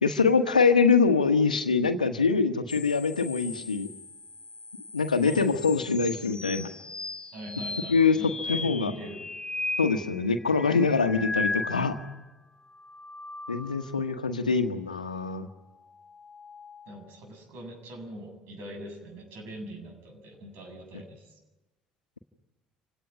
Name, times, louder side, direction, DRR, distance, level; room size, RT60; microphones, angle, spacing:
voice 1, 0.0-3.9 4.9-6.7 7.9-8.9 9.8-12.0 13.5-15.5, left 5 dB, 85° left, 9 dB, 1.3 m, -24 dB
sound 1, 2.7-12.2 12.7-14.1 15.9-17.0, left 3 dB, 20° left, 0.8 m, -37 dB
voice 2, 5.2-5.9 7.3-9.2 16.9-21.3, right 1 dB, 60° right, 4 dB, 7.8 m, -42 dB
28.0 x 17.5 x 9.6 m, 1.1 s
figure-of-eight pair, 55°, 4 cm